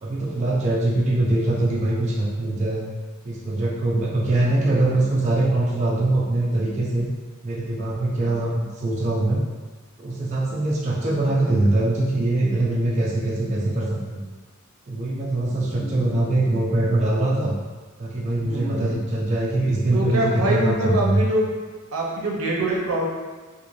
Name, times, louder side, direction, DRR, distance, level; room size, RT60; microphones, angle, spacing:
voice 1, 0.0-2.8 3.2-7.1 7.4-9.4 10.0-14.2 14.9-17.5 18.0-21.2, right 2 dB, 35° right, -5 dB, 0.4 m, -22 dB
voice 2, 15.7-16.2 18.5-19.0 19.9-21.5 21.9-23.1, right 1 dB, 80° right, -3 dB, 0.6 m, -25 dB
2.5 x 2.4 x 3.0 m, 1.3 s
head